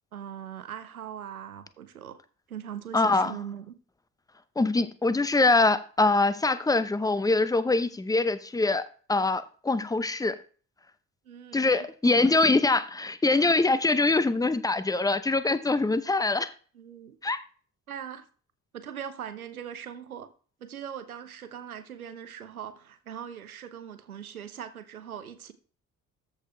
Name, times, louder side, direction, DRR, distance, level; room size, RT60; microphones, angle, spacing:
voice 1, 0.1-2.2 2.5-3.7 11.3-12.3 16.7-17.2 17.9-18.3 18.7-20.3 20.6-25.5, right 9 dB, 90° right, 0.6 m, -40 dB
voice 2, 2.9-3.4 4.6-8.8 9.1-10.4 11.5-16.5 17.2-17.4, left 3 dB, 10° left, 0.7 m, -24 dB
13.5 x 4.8 x 3.3 m
figure-of-eight pair, 45°, 42 cm